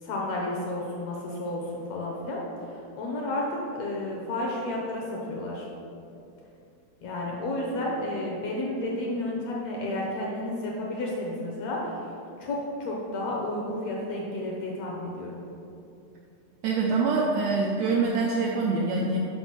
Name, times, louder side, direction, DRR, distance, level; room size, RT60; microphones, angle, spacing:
voice 1, 0.0-2.4 2.7-5.6 7.0-12.1 12.4-15.4, left 1 dB, 75° left, -2 dB, 1.6 m, -31 dB
voice 2, 16.6-19.2, right 4 dB, 90° right, -2 dB, 1.6 m, -25 dB
5.9 x 5.3 x 5.8 m, 2.7 s
omnidirectional pair, 4.0 m